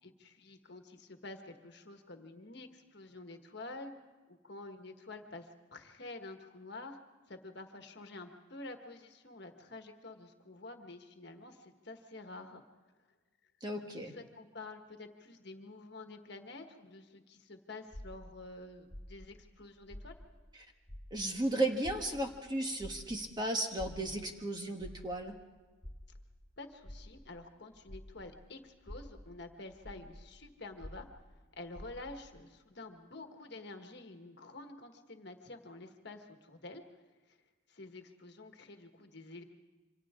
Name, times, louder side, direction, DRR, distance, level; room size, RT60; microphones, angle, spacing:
voice 1, 0.0-4.0 4.3-7.0 7.3-12.6 14.0-20.1 26.6-36.8 37.3-37.4 37.7-39.4, left 2 dB, 55° left, 5 dB, 1.5 m, -49 dB
voice 2, 13.6-14.1 21.1-25.3, right 1 dB, 20° right, 3 dB, 1.4 m, -35 dB
sound 1, 17.9-20.6 20.8-28.4 28.8-32.3, equal, 20° left, 2.4 m, -50 dB
27.5 x 25.0 x 3.7 m, 1.3 s
head